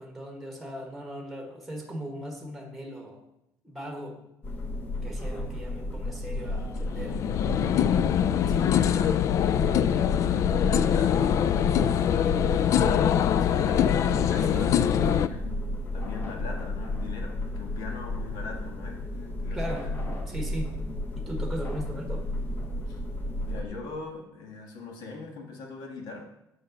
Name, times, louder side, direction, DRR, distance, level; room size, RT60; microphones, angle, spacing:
voice 1, 0.0-3.2 3.6-4.2 5.0-7.2 14.3-15.3 19.5-19.9 20.3-20.8 21.2-22.3, right 1 dB, ahead, 1 dB, 1.5 m, -38 dB
sound 1, 4.4-23.6, left 1 dB, 25° left, 1.0 m, -33 dB
sound 2, 6.5-15.3, left 9 dB, 45° left, 0.3 m, -23 dB
voice 2, 8.5-11.6 12.3-14.8 15.2-19.9 22.9-23.0 23.4-26.3, left 4 dB, 65° left, 2 dB, 1.8 m, -41 dB
8.6 x 6.7 x 5.3 m, 0.84 s
cardioid pair, 165°, 7 cm